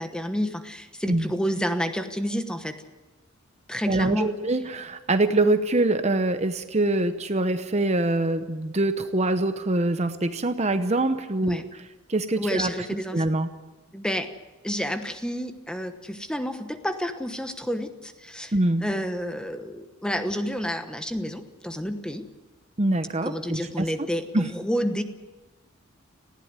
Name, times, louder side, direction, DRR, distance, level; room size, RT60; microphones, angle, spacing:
voice 1, 0.0-2.8 3.7-4.3 11.4-11.6 12.4-13.2 13.9-14.3 14.6-18.5 18.8-22.3 23.2-25.0, equal, 5° left, 8 dB, 1.1 m, -29 dB
voice 2, 3.9-11.6 12.1-12.7 13.1-13.5 18.5-18.8 22.8-23.9 24.3-24.5, right 2 dB, 30° right, 10 dB, 0.8 m, -24 dB
19.5 x 15.5 x 9.6 m, 1.1 s
head